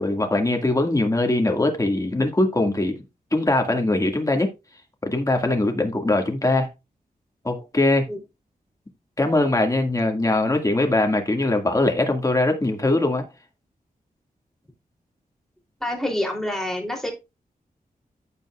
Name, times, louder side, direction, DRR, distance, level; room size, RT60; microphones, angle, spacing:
voice 1, 0.0-3.0 3.3-4.5 5.0-6.7 7.4-8.1 9.2-13.3, left 2 dB, 20° left, 2.0 m, -21 dB
voice 2, 15.8-17.1, left 1 dB, 5° left, 3.2 m, -27 dB
14.5 x 5.4 x 2.4 m
wide cardioid pair, 100°, 15 cm